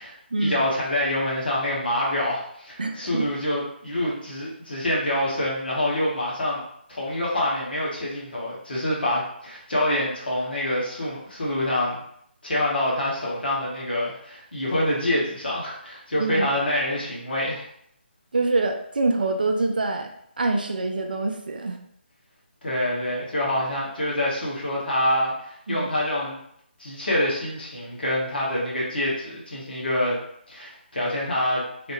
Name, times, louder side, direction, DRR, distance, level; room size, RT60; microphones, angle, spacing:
voice 1, 0.0-12.0 12.4-17.6 22.6-26.4 26.8-30.2 30.5-31.9, left 1 dB, 55° left, -5 dB, 1.2 m, -26 dB
voice 2, 2.8-3.3 16.2-16.5 18.3-20.1 20.4-21.8 25.7-25.9, right 3 dB, 50° right, 4 dB, 0.4 m, -25 dB
3.3 x 2.2 x 3.0 m, 0.70 s
figure-of-eight pair, 150°, 6 cm